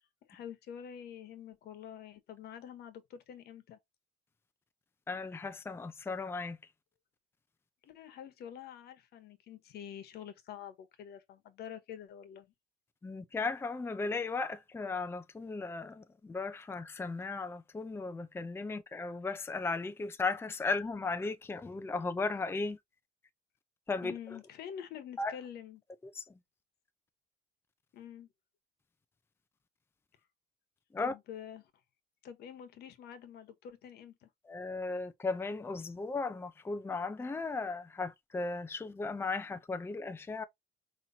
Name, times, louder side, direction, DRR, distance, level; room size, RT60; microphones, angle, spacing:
voice 1, 0.3-3.8 7.8-12.5 24.0-25.8 27.9-28.3 31.0-31.7 32.2-34.3, left 9 dB, 70° left, 1.3 m, -47 dB
voice 2, 5.1-6.6 13.0-22.8 23.9-24.1 25.2-25.3 26.1-26.2 30.9-31.1 34.5-40.4, left 3 dB, 15° left, 0.6 m, -36 dB
5.5 x 3.1 x 2.8 m
cardioid pair, 110°, 17 cm